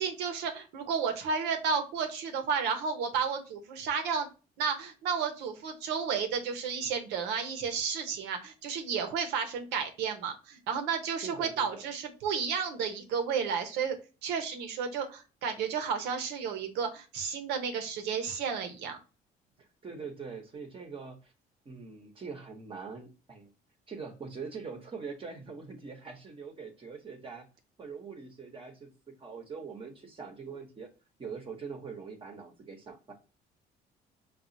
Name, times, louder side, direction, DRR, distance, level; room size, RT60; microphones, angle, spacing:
voice 1, 0.0-4.3 4.6-14.0 14.2-19.0, right 6 dB, 90° right, 6 dB, 0.8 m, -32 dB
voice 2, 11.2-11.9 19.6-21.3 21.6-23.5 23.9-27.5 27.8-30.9 31.2-33.1, right 5 dB, 30° right, 3 dB, 0.8 m, -43 dB
4.7 x 2.4 x 2.6 m, 0.32 s
cardioid pair, 110°, 17 cm